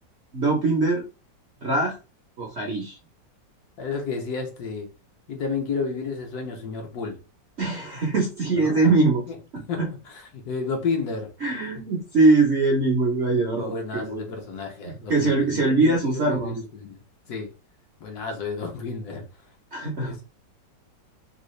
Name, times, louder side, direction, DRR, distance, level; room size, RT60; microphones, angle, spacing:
voice 1, 0.3-1.0 1.6-2.0 2.4-3.0 7.6-9.2 9.5-9.9 11.4-14.2 15.1-16.6 19.7-20.2, right 3 dB, 60° right, 0.7 m, -22 dB
voice 2, 3.8-4.9 5.3-7.2 8.5-8.9 9.3-9.4 9.7-11.3 13.3-17.0 17.3-17.5 18.0-19.5 20.0-20.2, left 4 dB, 65° left, 1.1 m, -31 dB
3.8 x 2.3 x 3.1 m
omnidirectional pair, 2.0 m